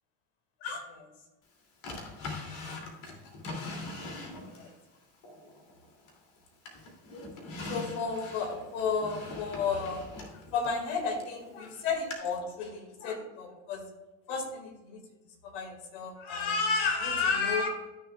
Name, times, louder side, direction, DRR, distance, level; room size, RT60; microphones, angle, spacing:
voice 1, 0.6-1.1 4.0-4.7 7.6-13.9 14.3-15.0 15.4-17.7, left 5 dB, 80° left, 4 dB, 2.2 m, -32 dB
Drawer open or close, 1.8-4.7 5.2-6.3 6.7-11.4 12.1-12.2, left 2 dB, 55° left, 2.8 m, -42 dB
13.0 x 6.9 x 2.4 m, 1.1 s
supercardioid pair, 90°, 37 cm